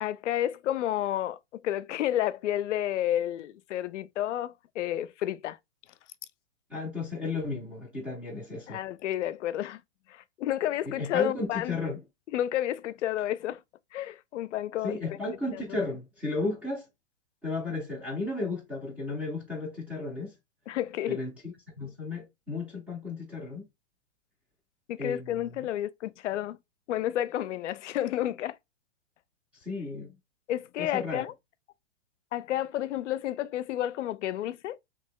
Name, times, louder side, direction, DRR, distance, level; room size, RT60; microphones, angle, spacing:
voice 1, 0.0-5.6 8.7-9.8 10.1-11.8 12.3-13.6 13.9-15.0 15.5-15.6 20.7-21.2 24.9-26.6 26.9-28.6 30.5-31.3 32.3-34.8, left 12 dB, 75° left, 0.5 m, -31 dB
voice 2, 6.7-8.8 10.9-12.0 14.8-16.8 17.4-20.3 21.1-23.7 25.0-25.7 29.6-30.1 30.8-31.3, left 3 dB, 5° right, 0.4 m, -34 dB
2.9 x 2.9 x 3.5 m
hypercardioid pair, 155°, 36 cm